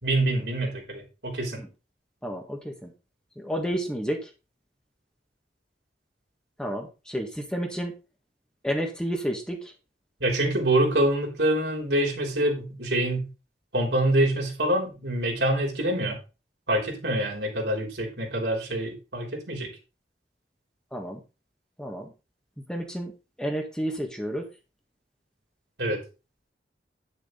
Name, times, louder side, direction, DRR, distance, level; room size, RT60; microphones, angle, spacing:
voice 1, 0.0-1.6 10.2-13.3 13.7-16.2 16.7-19.7 25.8-26.0, right 1 dB, 75° right, 0 dB, 3.7 m, -25 dB
voice 2, 2.2-2.6 3.4-4.2 6.6-7.9 8.6-9.6 20.9-21.2 21.8-22.1 22.7-23.1 23.4-24.4, equal, 5° left, 2 dB, 1.7 m, -30 dB
9.9 x 6.8 x 3.9 m, 0.30 s
head